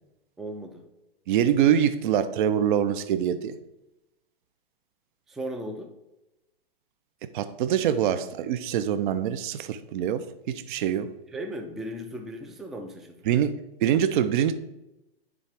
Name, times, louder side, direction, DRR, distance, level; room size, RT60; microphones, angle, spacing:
voice 1, 0.4-0.8 5.3-5.9 11.3-13.2, right 1 dB, ahead, 3 dB, 0.3 m, -36 dB
voice 2, 1.3-3.6 7.3-11.1 13.3-14.5, right 9 dB, 55° right, 11 dB, 0.6 m, -24 dB
9.6 x 3.7 x 3.4 m, 0.93 s
hypercardioid pair, 115°, 31 cm